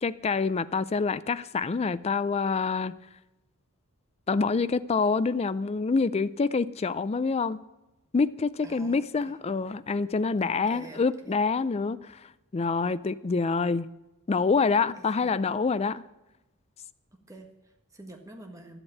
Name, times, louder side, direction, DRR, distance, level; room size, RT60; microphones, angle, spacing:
voice 1, 0.0-2.9 4.3-7.6 8.1-12.0 12.5-13.9 14.3-16.0, left 4 dB, 30° left, 0.4 m, -26 dB
voice 2, 8.6-9.4 10.4-11.3 15.0-15.4 17.1-18.8, right 1 dB, 15° right, 1.5 m, -48 dB
11.5 x 8.0 x 8.5 m
head